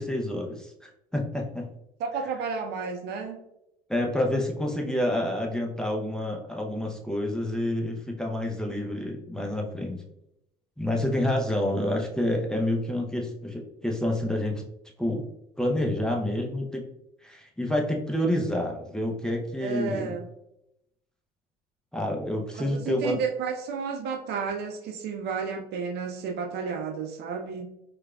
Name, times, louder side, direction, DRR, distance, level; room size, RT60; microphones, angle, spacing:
voice 1, 0.0-1.7 3.9-10.0 10.8-14.6 15.0-15.3 15.6-16.9 17.2-20.2 21.9-23.2, left 1 dB, 5° left, 0 dB, 0.6 m, -28 dB
voice 2, 2.0-3.4 19.6-20.3 22.5-27.6, right 5 dB, 60° right, 3 dB, 0.7 m, -32 dB
4.6 x 2.4 x 2.3 m, 0.82 s
hypercardioid pair, 70°, 19 cm